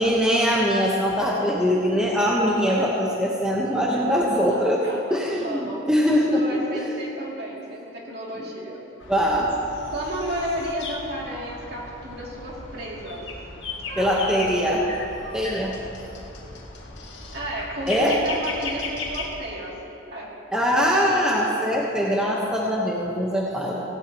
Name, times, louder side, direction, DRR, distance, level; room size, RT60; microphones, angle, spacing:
voice 1, 0.0-4.8 5.1-6.9 8.3-8.4 9.1-9.5 14.0-14.9 15.3-15.8 17.9-18.1 20.5-23.8, equal, 5° right, -4 dB, 1.1 m, -22 dB
voice 2, 3.9-5.8 6.1-8.8 9.9-13.2 13.9-14.3 17.3-19.8 20.1-20.3 20.6-20.9, right 1 dB, 50° right, -4 dB, 2.7 m, -33 dB
sound 1, 9.0-19.3, left 3 dB, 65° left, 2.0 m, -36 dB
18.0 x 16.5 x 3.0 m, 2.8 s
head